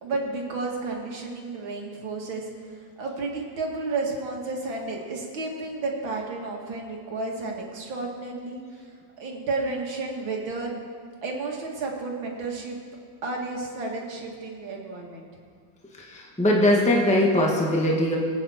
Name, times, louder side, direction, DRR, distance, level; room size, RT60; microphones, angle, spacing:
voice 1, 0.0-2.5 2.8-8.6 9.2-10.8 11.2-12.8 13.2-15.3, right 3 dB, 85° right, 0 dB, 2.7 m, -32 dB
voice 2, 16.0-18.2, left 1 dB, 5° left, -2 dB, 1.5 m, -21 dB
24.5 x 8.9 x 4.3 m, 2.1 s
omnidirectional pair, 2.1 m